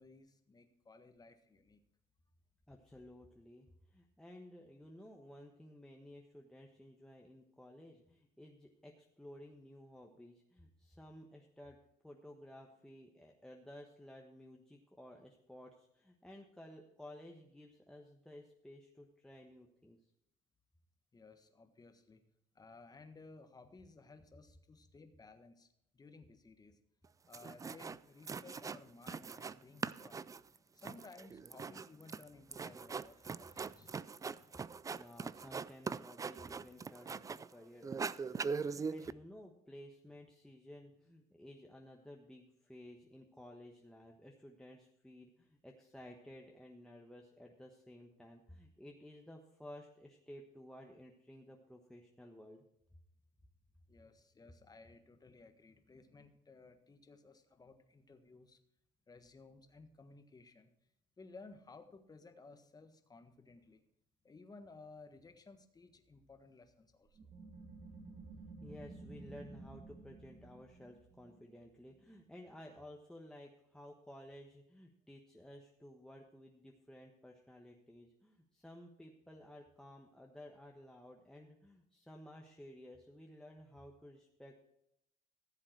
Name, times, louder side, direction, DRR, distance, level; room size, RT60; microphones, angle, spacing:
voice 1, 0.0-1.8 21.1-22.2 22.5-25.7 25.9-26.8 27.3-34.6 53.9-58.6 59.1-60.7 61.2-63.8 64.2-67.3, left 3 dB, 20° left, 7 dB, 1.5 m, -58 dB
voice 2, 2.7-11.8 12.0-20.0 33.5-33.6 34.9-52.6 68.6-84.7, left 1 dB, 5° left, 0 dB, 1.2 m, -55 dB
sound 1, 27.0-27.1 27.3-28.0 28.3-29.6 29.8-37.5 37.8-39.1, right 5 dB, 20° right, 0.3 m, -41 dB
sound 2, 67.1-72.4, right 3 dB, 45° right, 1.9 m, -53 dB
14.5 x 7.6 x 4.5 m, 0.79 s
cardioid pair, 110°, 17 cm